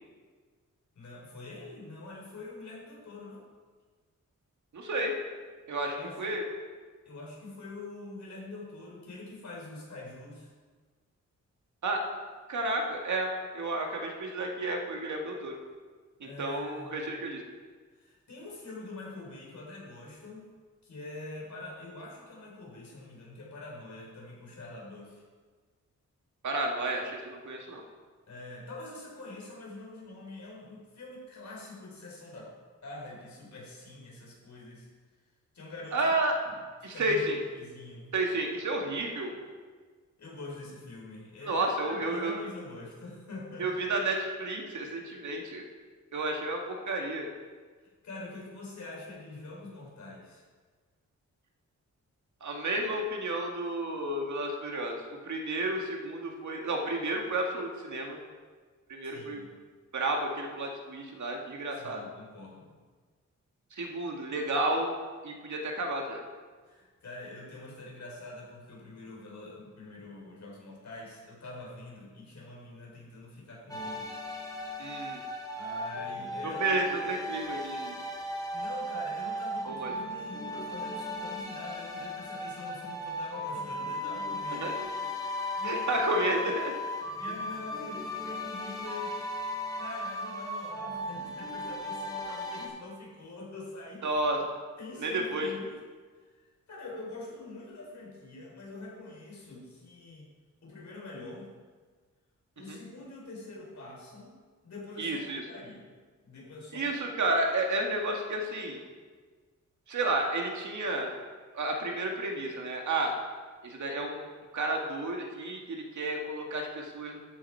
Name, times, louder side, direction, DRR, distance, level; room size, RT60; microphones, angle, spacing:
voice 1, 0.9-3.4 5.9-6.4 7.1-10.5 16.2-17.0 17.9-20.5 20.8-25.2 28.3-32.5 32.8-34.9 35.5-36.2 36.5-36.6 36.9-37.2 37.5-38.1 40.2-43.7 47.8-50.4 59.0-59.5 61.7-62.8 66.6-74.1 75.5-76.8 78.5-84.7 85.6-86.2 87.0-89.2 89.7-94.2 94.8-95.8 96.7-100.3 100.6-101.5 102.6-104.3 104.6-105.2 105.5-105.9 106.2-106.8, left 2 dB, 70° left, -3 dB, 4.1 m, -45 dB
voice 2, 4.7-5.1 5.7-6.4 11.8-12.0 12.5-15.6 16.2-17.4 26.4-27.8 35.9-36.4 36.8-37.4 38.1-39.4 41.4-42.4 43.6-45.6 46.1-47.3 52.4-55.0 55.2-58.2 58.9-59.4 59.9-62.0 63.7-64.9 65.2-66.2 74.8-75.2 76.6-78.0 79.6-79.9 84.6-84.9 85.6-86.7 94.0-94.4 95.0-95.5 102.7-102.8 105.0-105.4 106.7-108.8 109.9-111.2 111.5-113.1 113.6-114.2 114.5-117.2, right 2 dB, 75° right, 1 dB, 2.0 m, -31 dB
sound 1, 73.7-92.7, left 1 dB, 10° left, 1.5 m, -36 dB
13.0 x 8.9 x 4.7 m, 1.5 s
wide cardioid pair, 160°, 30 cm